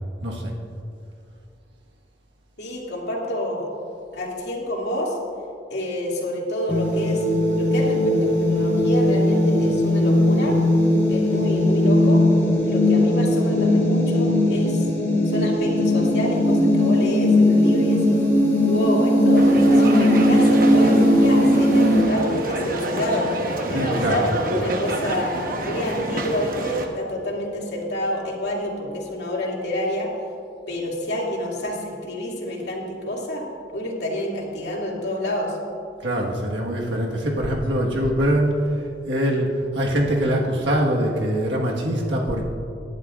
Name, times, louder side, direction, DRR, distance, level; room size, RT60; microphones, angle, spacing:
voice 1, 0.2-0.5 23.7-24.3 36.0-38.5 39.1-42.4, equal, 90° right, -1 dB, 1.5 m, -23 dB
voice 2, 2.6-3.7 4.1-5.2 5.7-7.2 7.6-10.6 11.1-12.2 12.6-14.9 15.2-18.2 18.6-19.5 19.7-23.3 23.7-25.3 25.6-30.1 30.7-33.4 33.7-35.6, left 1 dB, 70° left, -3 dB, 2.5 m, -28 dB
sound 1, 6.7-22.0, left 1 dB, 15° left, 2.4 m, -18 dB
sound 2, 19.4-26.9, right 1 dB, 50° right, 1.1 m, -28 dB
19.0 x 11.0 x 2.5 m, 2.5 s
head